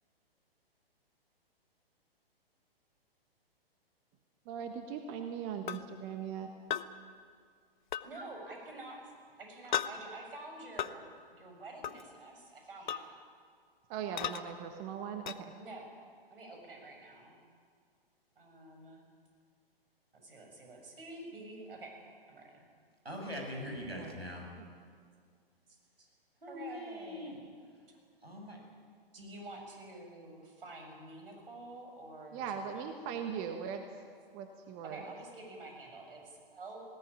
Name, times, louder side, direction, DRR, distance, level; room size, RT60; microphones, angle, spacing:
voice 1, 4.5-6.5 13.9-15.5 23.9-24.1 24.6-24.7 32.3-33.8 34.3-35.0, right 7 dB, 30° right, 6 dB, 1.4 m, -40 dB
sound 1, 5.7-5.8 6.7-6.9 7.9-8.1 9.7-9.9 10.8-10.9 11.8-12.0 12.9-13.0 14.2-14.4 15.3-15.4, left 10 dB, 50° left, 1.0 m, -34 dB
voice 2, 8.0-13.2 14.1-14.4 15.5-15.9 16.3-17.4 18.4-19.0 20.2-21.9 22.3-22.6 26.0-26.1 26.5-27.4 29.1-32.9 34.8-36.9, right 2 dB, 65° right, 2 dB, 7.0 m, -48 dB
voice 3, 23.0-24.5 26.4-27.4 28.2-28.6, left 1 dB, 85° right, 1 dB, 7.1 m, -42 dB
19.5 x 17.5 x 10.0 m, 2.1 s
figure-of-eight pair, 120°, 30 cm